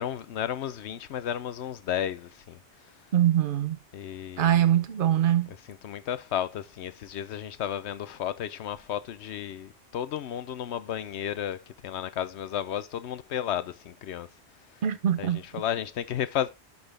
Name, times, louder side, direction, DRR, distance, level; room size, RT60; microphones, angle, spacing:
voice 1, 0.0-2.6 3.9-4.6 5.8-14.3 15.2-16.5, left 10 dB, 75° left, 0.9 m, -33 dB
voice 2, 3.1-3.8 4.4-5.5 14.8-15.4, right 11 dB, 55° right, 0.8 m, -23 dB
11.5 x 4.1 x 3.3 m
omnidirectional pair, 1.2 m